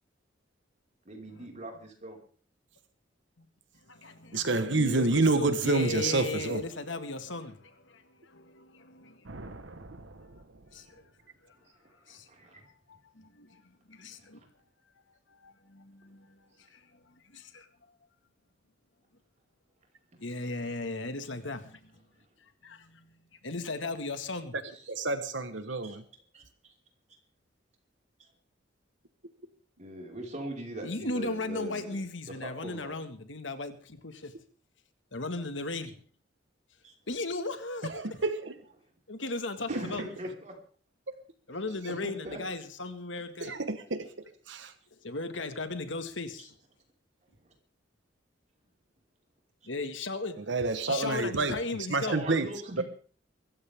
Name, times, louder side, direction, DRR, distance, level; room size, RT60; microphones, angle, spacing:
voice 1, 1.0-2.2 11.7-12.6 14.3-14.5 20.4-20.7 24.7-24.9 25.8-26.0 26.3-26.7 28.2-28.3 29.8-33.0 36.8-36.9 39.7-40.5 42.0-42.4 46.4-46.5 47.4-47.5 52.1-52.8, right 1 dB, 40° right, 5.2 m, -41 dB
voice 2, 3.7-9.3 10.7-11.1 11.4-11.6 12.1-12.3 12.9-14.4 15.3-17.7 20.2-22.0 22.4-24.6 30.8-34.4 35.1-36.0 37.1-38.2 39.1-40.0 41.5-43.6 45.0-46.5 49.6-50.5 50.8-52.2, left 3 dB, 80° left, 1.9 m, -37 dB
voice 3, 4.3-6.6 24.9-26.0 37.9-38.5 39.7-39.8 43.4-44.7 50.4-51.6 51.9-52.5 52.8-52.9, right 3 dB, 70° right, 1.3 m, -28 dB
sound 1, 9.2-11.4, right 2 dB, 90° right, 1.4 m, -47 dB
23.5 x 14.5 x 3.7 m
head